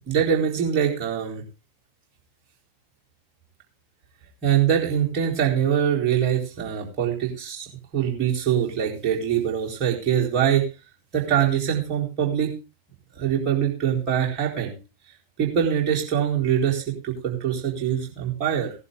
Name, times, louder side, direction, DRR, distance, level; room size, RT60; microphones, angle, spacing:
voice 1, 0.1-1.4 4.4-10.6 11.1-12.5 13.2-14.8 15.4-18.7, right 9 dB, 30° right, -2 dB, 4.1 m, -23 dB
16.5 x 11.0 x 3.8 m, 0.30 s
figure-of-eight pair, 90°, 0 cm